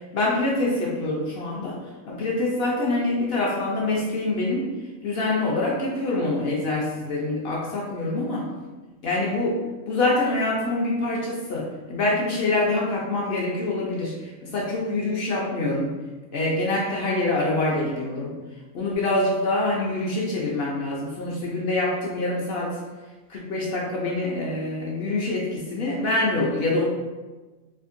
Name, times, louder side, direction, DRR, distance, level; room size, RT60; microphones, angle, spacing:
voice 1, 0.1-1.8 2.0-4.7 5.0-8.5 9.0-9.6 9.9-15.9 16.3-18.3 18.7-22.8 23.3-26.8, left 2 dB, 60° left, -4 dB, 0.7 m, -25 dB
3.5 x 2.5 x 2.5 m, 1.2 s
omnidirectional pair, 1.4 m